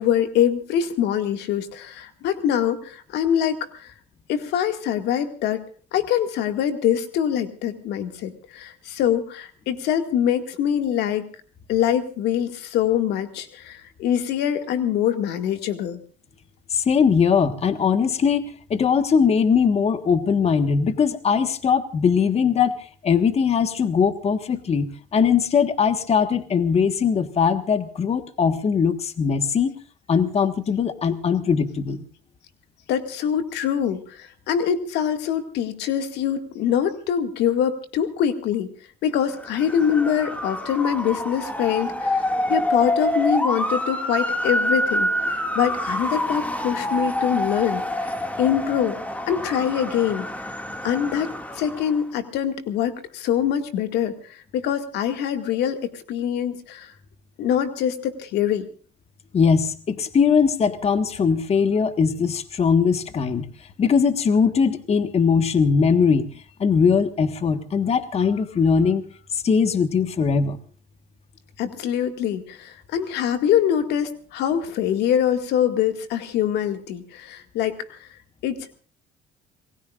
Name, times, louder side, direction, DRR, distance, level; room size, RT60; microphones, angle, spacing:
voice 1, 0.0-3.9 4.3-5.6 5.9-11.3 11.7-16.0 32.9-38.7 39.0-47.8 48.4-49.0 49.3-50.3 50.8-51.3 51.6-56.9 57.4-58.7 71.6-78.1 78.4-78.6, left 9 dB, 85° left, 7 dB, 2.1 m, -24 dB
voice 2, 16.7-29.7 30.1-32.0 59.3-69.0 69.3-70.6, left 6 dB, 40° left, 9 dB, 1.5 m, -20 dB
Motor vehicle (road) / Siren, 39.3-52.0, equal, 10° left, 2.2 m, -27 dB
28.0 x 20.0 x 2.5 m, 0.42 s
cardioid pair, 110°, 17 cm